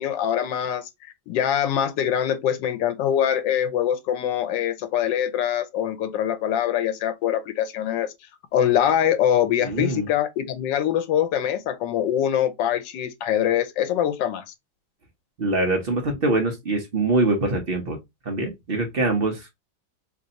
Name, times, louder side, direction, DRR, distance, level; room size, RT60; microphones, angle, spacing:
voice 1, 0.0-8.1 8.5-14.4, left 10 dB, 80° left, 1.3 m, -23 dB
voice 2, 9.6-10.1 15.4-18.0 18.2-19.5, right 2 dB, 45° right, 0.7 m, -24 dB
3.3 x 2.6 x 3.9 m
omnidirectional pair, 1.9 m